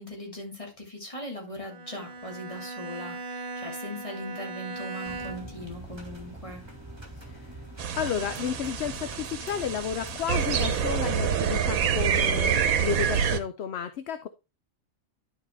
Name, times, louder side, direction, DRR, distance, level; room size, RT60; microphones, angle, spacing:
voice 1, 0.0-6.6, left 1 dB, 25° left, -1 dB, 2.8 m, -39 dB
Bowed string instrument, 1.6-5.7, right 3 dB, 50° right, 1.3 m, -38 dB
sound 1, 5.0-11.4, right 1 dB, 20° right, 2.2 m, -43 dB
voice 2, 7.2-7.5 8.0-14.3, left 8 dB, 60° left, 11 dB, 0.8 m, -32 dB
sound 2, 7.8-13.4, right 7 dB, 80° right, 1.3 m, -27 dB
11.5 x 5.0 x 3.2 m, 0.26 s
omnidirectional pair, 1.4 m